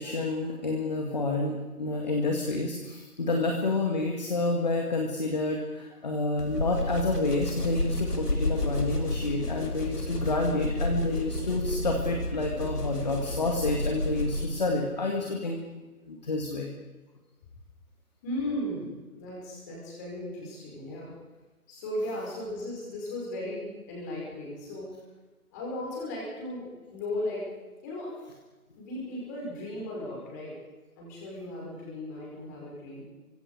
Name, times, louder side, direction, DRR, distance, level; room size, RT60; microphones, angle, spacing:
voice 1, 0.0-15.7 16.1-16.7 22.0-22.1, left 2 dB, 30° left, 1 dB, 2.2 m, -29 dB
sound 1, 6.4-14.7, left 1 dB, 80° left, 4.3 m, -31 dB
voice 2, 18.2-21.1 21.7-24.9 25.5-27.5 27.8-28.1 28.8-30.6 31.0-33.1, left 1 dB, 10° left, -3 dB, 5.4 m, -36 dB
28.5 x 24.5 x 5.0 m, 1.2 s
figure-of-eight pair, 160°, 45 cm